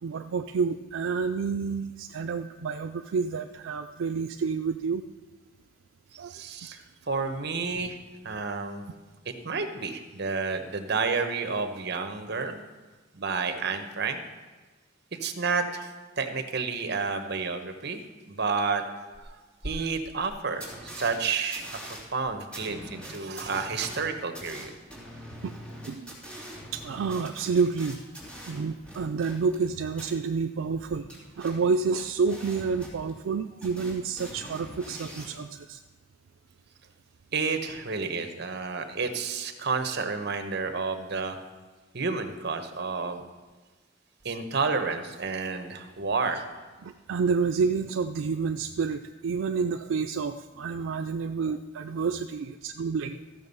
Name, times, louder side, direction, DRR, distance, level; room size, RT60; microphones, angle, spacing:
voice 1, 0.0-5.0 6.2-6.4 6.7-6.8 25.4-25.5 25.8-26.1 26.7-28.0 28.5-31.1 31.4-35.8 46.8-53.2, right 5 dB, 85° right, 7 dB, 0.4 m, -29 dB
voice 2, 6.3-8.0 8.2-8.8 9.3-12.6 13.1-14.2 15.2-15.9 16.2-18.0 18.3-18.8 19.2-19.4 19.6-21.6 22.1-24.7 37.3-41.4 41.9-43.2 44.2-46.4, right 4 dB, 60° right, 7 dB, 1.1 m, -30 dB
sound 1, 19.1-19.2 19.6-19.7 20.2-20.3 20.6-21.1 21.5-29.7 29.9-30.1 30.7-33.4 33.6-35.3, equal, 5° left, 2.9 m, -43 dB
14.0 x 6.9 x 5.5 m, 1.3 s
head